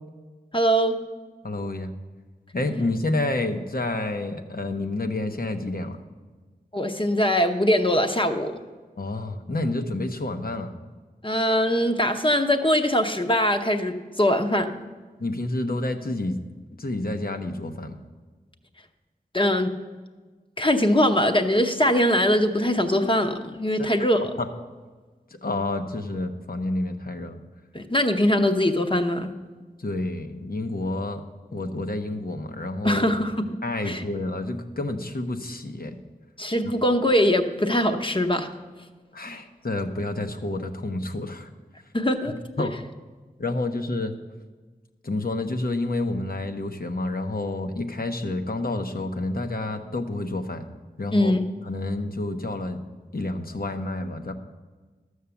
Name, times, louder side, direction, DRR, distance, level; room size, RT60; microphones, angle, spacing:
voice 1, 0.5-0.9 6.7-8.5 11.2-14.7 19.3-19.7 20.6-24.2 27.7-29.3 32.8-33.4 33.9-34.0 36.4-38.5 39.3-39.4 41.9-42.7 51.1-51.4, equal, 30° left, 5 dB, 0.8 m, -22 dB
voice 2, 1.4-1.9 2.5-6.0 9.0-10.7 15.2-16.4 16.8-18.0 23.8-23.9 24.4-24.5 25.4-27.4 29.8-31.2 31.5-33.1 33.6-36.0 36.6-36.9 39.1-41.5 42.6-42.7 43.4-44.1 45.0-50.6 51.0-51.3 51.7-52.8 53.1-54.3, left 2 dB, 65° left, 6 dB, 0.9 m, -29 dB
12.5 x 6.5 x 7.0 m, 1.4 s
wide cardioid pair, 50°, 16 cm